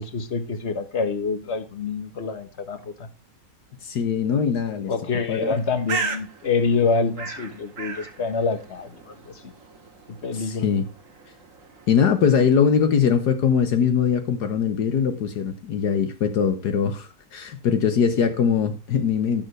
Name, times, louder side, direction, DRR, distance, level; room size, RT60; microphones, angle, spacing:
voice 1, 0.0-3.1 4.9-9.5 10.1-10.7, left 4 dB, 40° left, 1.4 m, -26 dB
voice 2, 3.8-4.9 5.3-5.6 10.3-10.9 11.9-19.5, left 7 dB, 70° left, 1.6 m, -21 dB
Bird, 5.4-13.0, right 4 dB, 50° right, 1.9 m, -37 dB
16.0 x 6.8 x 3.2 m
omnidirectional pair, 1.9 m